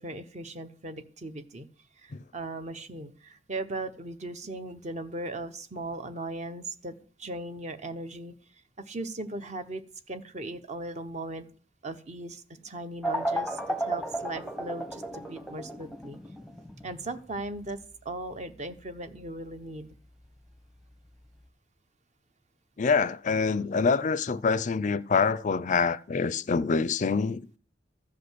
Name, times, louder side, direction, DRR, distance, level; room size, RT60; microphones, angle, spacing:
voice 1, 0.0-1.7 2.0-8.3 8.8-9.8 10.1-11.5 11.8-16.2 16.8-19.9, right 2 dB, 40° right, 1.0 m, -38 dB
sound 1, 13.0-21.5, right 1 dB, ahead, 0.8 m, -35 dB
voice 2, 22.8-27.4, left 5 dB, 45° left, 0.4 m, -25 dB
14.0 x 5.1 x 8.1 m
head